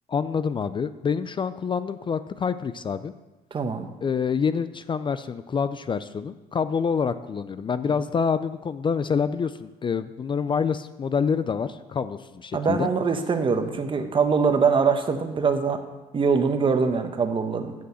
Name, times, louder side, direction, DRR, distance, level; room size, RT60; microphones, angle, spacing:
voice 1, 0.1-3.1 4.0-12.9, left 6 dB, 30° left, 13 dB, 0.4 m, -27 dB
voice 2, 3.5-3.9 12.5-15.8 16.1-17.7, right 5 dB, 30° right, 7 dB, 1.1 m, -23 dB
8.4 x 6.2 x 7.6 m, 1.1 s
cardioid pair, 110°, 17 cm